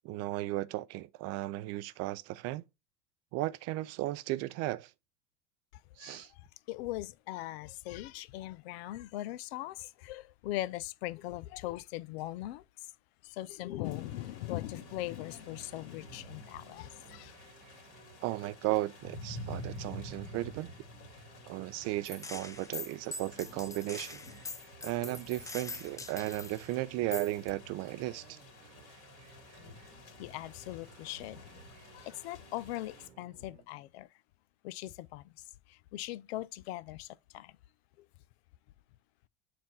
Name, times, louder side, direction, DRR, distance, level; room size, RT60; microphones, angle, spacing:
voice 1, 0.0-2.6 3.3-4.9 6.0-6.3 18.2-20.7 21.5-24.2 24.8-28.4, right 17 dB, 45° right, 0.4 m, -35 dB
voice 2, 6.7-12.6 13.4-17.3 30.2-31.4 31.9-34.1 34.6-35.2 35.9-37.1 37.3-37.5, left 16 dB, 65° left, 0.5 m, -40 dB
sound 1, 13.8-33.1, left 1 dB, 45° left, 2.0 m, -50 dB
sound 2, 14.5-33.7, right 8 dB, 70° right, 1.1 m, -61 dB
Gunshot gunfire, 22.0-26.7 27.1-27.5, left 3 dB, 10° left, 0.5 m, -43 dB
7.2 x 2.5 x 5.5 m
hypercardioid pair, 80°, 34 cm